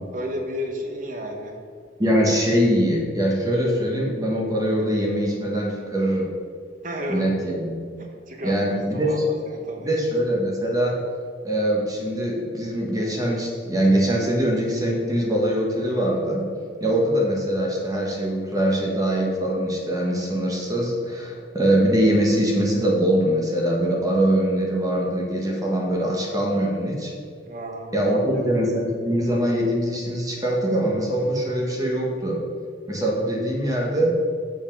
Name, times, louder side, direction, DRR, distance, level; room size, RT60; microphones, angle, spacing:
voice 1, 0.1-1.6 6.8-7.5 8.0-10.1 27.4-28.5, equal, 45° right, 3 dB, 1.0 m, -32 dB
voice 2, 2.0-6.3 7.1-7.9 8.4-9.1 9.8-11.0 11.4-16.4 16.8-27.1 27.9-32.4 32.9-34.1, right 1 dB, 20° right, -2 dB, 1.3 m, -23 dB
7.2 x 5.2 x 5.2 m, 2.1 s
head